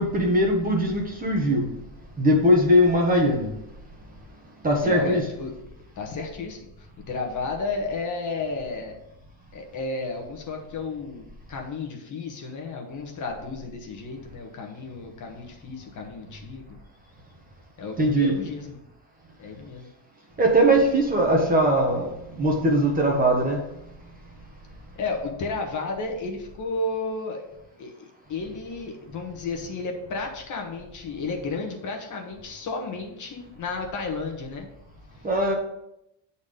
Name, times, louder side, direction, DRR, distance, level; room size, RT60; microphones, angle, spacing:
voice 1, 0.0-1.6 2.2-3.5 4.6-5.2 18.0-18.4 20.4-23.6 35.2-35.5, equal, 20° right, 1 dB, 1.3 m, -20 dB
voice 2, 4.8-5.5 6.0-8.9 9.5-16.6 17.8-18.8 19.4-19.9 24.9-27.4 27.8-34.7, left 3 dB, 40° left, 2 dB, 1.3 m, -32 dB
8.2 x 4.2 x 5.2 m, 0.84 s
cardioid pair, 145°, 47 cm